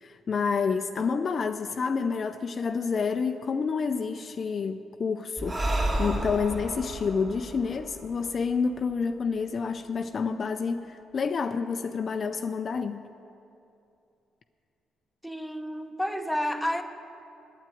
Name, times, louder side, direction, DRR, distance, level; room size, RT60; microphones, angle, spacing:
voice 1, 0.0-5.6 6.0-13.1, left 5 dB, 45° left, 8 dB, 0.4 m, -29 dB
Breathing, 5.4-8.9, right 1 dB, 30° right, 2.2 m, -31 dB
voice 2, 15.2-16.8, equal, ahead, 6 dB, 0.8 m, -30 dB
9.0 x 8.7 x 9.2 m, 2.7 s
cardioid pair, 90°, 0 cm